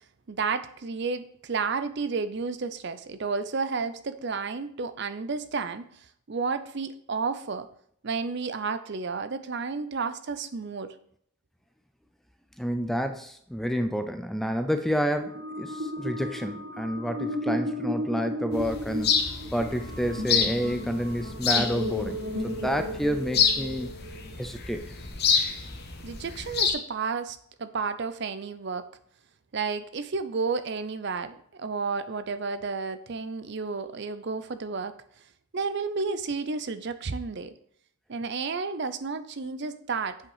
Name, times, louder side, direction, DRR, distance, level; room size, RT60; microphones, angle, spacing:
voice 1, 0.3-5.8 6.3-7.7 8.0-10.9 26.0-28.9 29.5-34.9 35.5-37.5 38.1-40.2, right 4 dB, 50° right, 12 dB, 0.5 m, -31 dB
voice 2, 12.6-19.2 19.5-23.9 24.4-24.9, equal, ahead, 7 dB, 0.4 m, -29 dB
sound 1, 15.1-24.4, equal, 75° right, 1.4 m, -34 dB
sound 2, 18.5-26.7, left 6 dB, 50° left, 1.1 m, -29 dB
7.8 x 5.7 x 4.9 m, 0.65 s
head